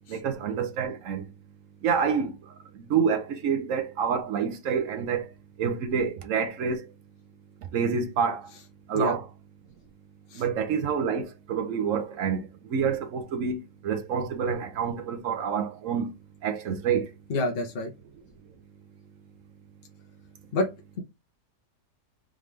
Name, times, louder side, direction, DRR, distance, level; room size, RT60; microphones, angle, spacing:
voice 1, 0.1-1.2 1.8-2.5 2.9-5.3 5.6-6.9 7.7-8.5 8.9-9.3 10.3-16.1 16.4-17.1, right 6 dB, 60° right, 0.9 m, -28 dB
voice 2, 17.3-17.9 20.5-20.7, left 2 dB, 50° left, 0.7 m, -27 dB
3.7 x 3.4 x 3.1 m
omnidirectional pair, 1.7 m